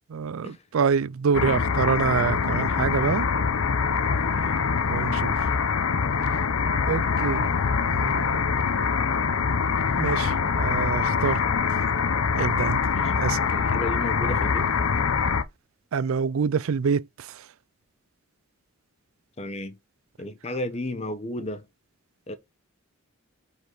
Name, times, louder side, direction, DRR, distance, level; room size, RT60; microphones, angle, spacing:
voice 1, 0.1-3.3 4.8-5.3 6.9-7.5 7.8-8.5 10.0-11.4 12.3-12.8 13.2-13.4 15.9-17.4, right 6 dB, 75° right, 0.4 m, -26 dB
sound 1, 1.3-15.4, left 5 dB, 85° left, 0.7 m, -24 dB
voice 2, 4.2-4.6 11.2-11.4 12.8-13.2 13.5-14.7 19.4-19.8 20.2-21.7 22.3-22.4, left 1 dB, 30° left, 0.8 m, -34 dB
6.5 x 5.3 x 3.9 m
head